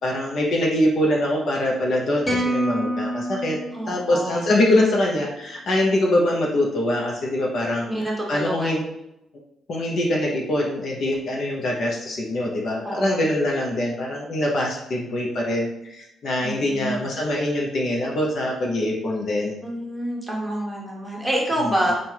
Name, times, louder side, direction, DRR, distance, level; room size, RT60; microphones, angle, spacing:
voice 1, 0.0-3.6 3.9-7.9 8.3-8.8 9.7-19.6 21.6-21.7, left 1 dB, 60° left, -1 dB, 0.9 m, -23 dB
sound 1, 2.2-4.6, right 1 dB, 15° left, 1.4 m, -27 dB
voice 2, 3.7-4.5 7.9-8.8 12.8-13.2 16.4-17.0 19.6-21.9, right 1 dB, 5° right, -3 dB, 1.3 m, -27 dB
3.7 x 2.5 x 4.5 m, 0.86 s
cardioid pair, 90°, 0 cm